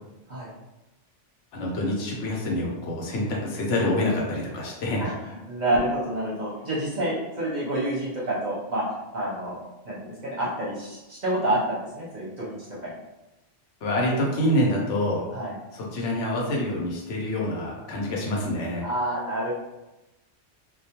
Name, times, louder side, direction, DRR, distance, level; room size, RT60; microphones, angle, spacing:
voice 1, 1.5-5.1 13.8-15.2 15.7-18.8, left 1 dB, 80° left, -2 dB, 1.0 m, -26 dB
voice 2, 5.0-8.8 9.1-9.6 9.8-12.6 12.8-12.9 15.3-15.5 18.8-19.5, right 1 dB, 50° right, -6 dB, 0.6 m, -28 dB
2.3 x 2.2 x 2.8 m, 1.0 s
omnidirectional pair, 1.2 m